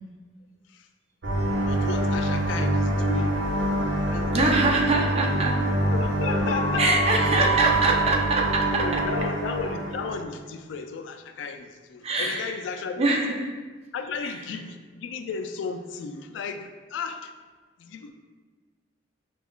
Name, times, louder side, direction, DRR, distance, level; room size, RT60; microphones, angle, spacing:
sound 1, 1.2-10.2, right 1 dB, 75° right, 0.6 m, -25 dB
voice 1, 1.7-3.4 4.1-4.7 5.9-7.3 8.6-13.0 13.9-17.3 17.8-18.1, left 5 dB, 80° left, 7 dB, 0.3 m, -34 dB
voice 2, 4.3-5.6 6.8-9.0 12.0-12.6 13.0-13.5 14.2-14.4, right 2 dB, 35° right, 0 dB, 0.4 m, -24 dB
5.4 x 2.3 x 2.3 m, 1.4 s
head